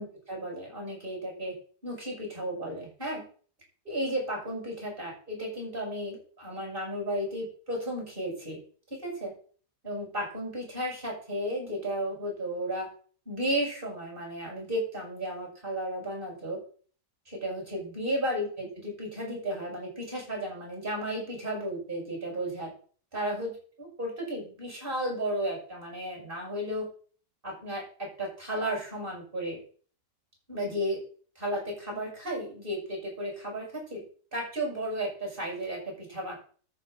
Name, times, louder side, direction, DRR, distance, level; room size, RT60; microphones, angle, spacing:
voice 1, 0.0-1.5 1.8-3.2 3.9-8.6 9.0-9.3 9.8-12.9 13.3-16.6 17.3-22.7 23.1-26.9 27.4-29.6 30.5-31.0 31.4-34.0 34.3-36.3, equal, 30° right, -1 dB, 7.3 m, -34 dB
13.0 x 6.0 x 6.7 m, 0.42 s
omnidirectional pair, 1.8 m